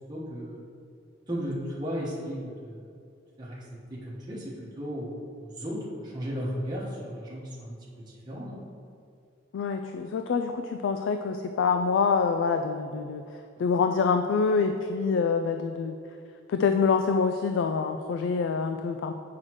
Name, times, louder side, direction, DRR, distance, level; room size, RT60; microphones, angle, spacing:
voice 1, 0.1-0.6 1.3-2.9 3.4-3.6 3.9-8.6, equal, 20° right, -7 dB, 1.2 m, -35 dB
voice 2, 9.5-13.2 13.6-16.0 16.5-19.1, left 5 dB, 80° left, 6 dB, 0.3 m, -26 dB
7.9 x 5.7 x 3.1 m, 2.3 s
head